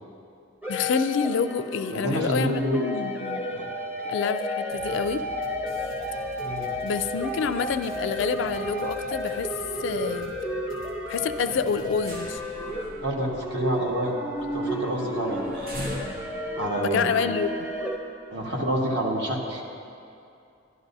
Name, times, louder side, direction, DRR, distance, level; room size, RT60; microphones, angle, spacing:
sound 1, 0.6-18.0, equal, 10° right, 0.7 m, -32 dB
voice 1, 0.7-3.5 4.1-5.2 6.8-9.5 9.8-10.3 11.1-12.4 16.7-17.5, left 6 dB, 65° left, 11 dB, 0.3 m, -27 dB
voice 2, 1.9-2.8 3.5-3.7 6.4-6.7 13.0-14.2 14.5-15.7 16.6-17.1 18.3-19.6, equal, 60° right, -1 dB, 1.3 m, -28 dB
sound 2, 4.7-12.4, equal, 85° right, 1.3 m, -46 dB
sound 3, 10.3-10.5 10.8-11.0 11.4-18.1 18.6-18.7, equal, 45° right, 1.0 m, -41 dB
12.0 x 11.0 x 2.7 m, 2.5 s
head